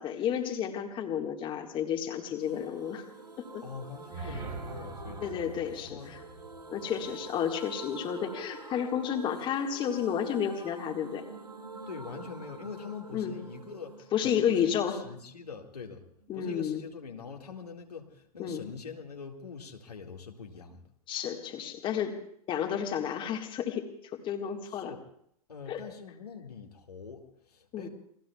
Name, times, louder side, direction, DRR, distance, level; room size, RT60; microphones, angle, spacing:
voice 1, 0.0-3.0 3.4-3.6 4.2-4.4 5.2-6.2 6.7-11.3 13.1-13.4 14.1-15.0 16.3-16.8 18.4-18.6 21.1-22.2 22.5-24.9 25.7-25.8 27.7-27.9, left 8 dB, 25° left, 4 dB, 1.7 m, -31 dB
sound 1, 2.4-16.0 16.3-16.4 16.6-16.7, right 3 dB, 90° right, 1.3 m, -46 dB
voice 2, 3.6-5.3 5.9-6.2 11.9-14.0 14.2-16.0 16.3-20.8 24.7-25.0 25.5-27.2 27.5-27.9, left 5 dB, 75° left, 2 dB, 2.0 m, -43 dB
sound 2, 3.9-8.0, right 4 dB, 35° right, 2.7 m, -44 dB
29.0 x 21.0 x 2.3 m, 0.69 s
figure-of-eight pair, 105°, 20 cm